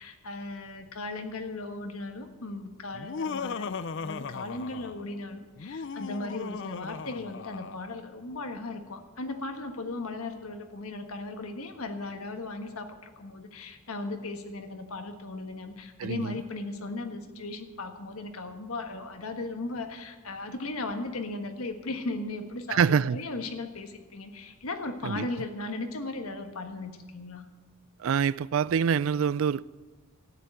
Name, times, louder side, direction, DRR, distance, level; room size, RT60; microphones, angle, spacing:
voice 1, 0.0-27.5, left 2 dB, 85° left, 1.5 m, -37 dB
Laughter, 2.9-5.1 5.6-7.9, left 5 dB, 60° left, 0.5 m, -37 dB
voice 2, 16.0-16.4 22.7-23.2 25.0-25.3 28.0-29.7, right 7 dB, 65° right, 0.4 m, -25 dB
13.0 x 10.0 x 7.8 m
head